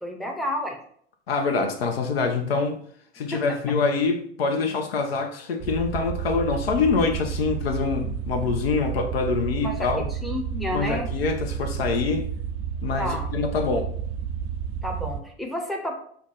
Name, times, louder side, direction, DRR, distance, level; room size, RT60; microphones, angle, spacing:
voice 1, 0.0-0.8 3.3-3.4 9.6-9.7 10.1-11.1 13.0-13.3 14.8-16.0, equal, ahead, 2 dB, 0.7 m, -30 dB
voice 2, 1.3-2.8 3.1-10.1 10.7-12.3 12.8-13.9, left 4 dB, 70° left, 4 dB, 0.7 m, -25 dB
sound 1, 5.6-15.2, right 7 dB, 35° right, 0.5 m, -31 dB
5.8 x 2.2 x 4.0 m, 0.62 s
figure-of-eight pair, 75°, 32 cm